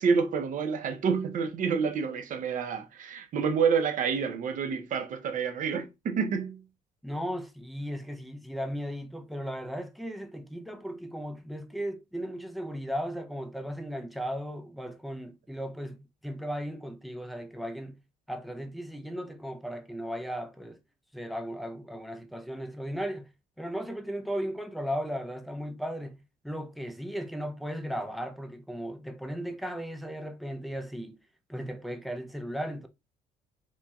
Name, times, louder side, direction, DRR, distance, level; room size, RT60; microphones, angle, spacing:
voice 1, 0.0-6.6, right 6 dB, 50° right, 0.6 m, -28 dB
voice 2, 7.0-18.0 18.3-20.8 21.1-23.3 23.6-26.2 26.4-31.2 31.5-32.9, equal, ahead, 0.4 m, -36 dB
3.0 x 2.6 x 2.2 m
cardioid pair, 110°, 17 cm